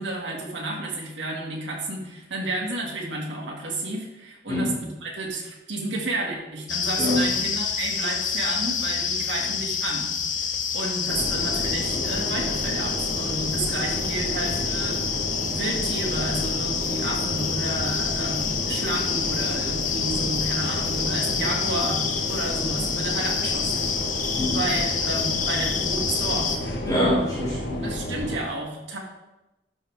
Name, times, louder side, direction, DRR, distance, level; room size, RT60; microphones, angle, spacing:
voice 1, 0.0-15.0 15.5-23.8 24.5-26.6 27.8-29.0, right 2 dB, 90° right, -1 dB, 2.1 m, -31 dB
sound 1, 6.7-26.6, left 6 dB, 45° left, 0.8 m, -28 dB
sound 2, 11.1-28.4, equal, 80° left, 1.3 m, -32 dB
voice 2, 26.8-27.8, left 1 dB, 20° left, -7 dB, 2.6 m, -24 dB
12.0 x 5.6 x 3.6 m, 0.97 s
head